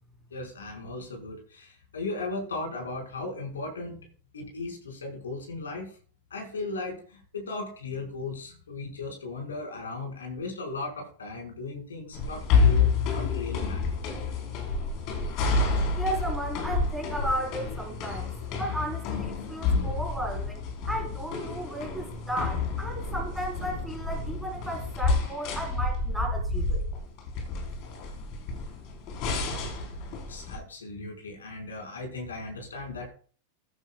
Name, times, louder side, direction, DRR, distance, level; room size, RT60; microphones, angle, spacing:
voice 1, 0.3-4.0 4.3-5.9 6.3-13.8 30.3-33.1, left 3 dB, 70° left, 5.1 m, -37 dB
sound 1, 12.1-30.6, left 4 dB, 40° left, 4.1 m, -29 dB
voice 2, 15.9-18.3 18.6-26.8, right 1 dB, 5° right, 4.3 m, -34 dB
14.5 x 10.0 x 2.4 m
figure-of-eight pair, 90°, 0 cm